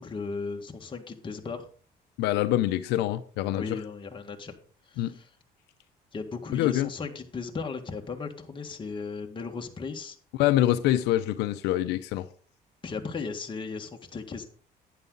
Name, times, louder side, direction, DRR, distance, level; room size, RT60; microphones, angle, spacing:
voice 1, 0.0-1.7 3.5-4.5 4.9-5.3 6.1-10.2 12.8-14.5, left 4 dB, 30° left, 3 dB, 1.8 m, -36 dB
voice 2, 2.2-3.8 5.0-5.1 6.5-6.9 10.4-12.3, left 14 dB, 90° left, 10 dB, 0.7 m, -25 dB
11.0 x 9.6 x 4.0 m, 0.42 s
cardioid pair, 110°, 17 cm